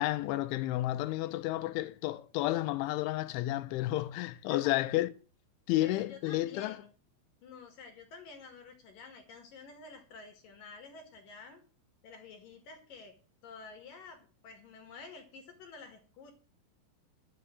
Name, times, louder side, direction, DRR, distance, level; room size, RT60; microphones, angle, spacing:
voice 1, 0.0-5.1 5.7-6.8, left 16 dB, 85° left, 3.2 m, -31 dB
voice 2, 0.8-1.8 4.5-4.8 5.8-6.9 7.4-11.6 12.0-13.2 13.4-16.3, left 4 dB, 55° left, 2.9 m, -50 dB
11.5 x 6.8 x 7.6 m
omnidirectional pair, 5.3 m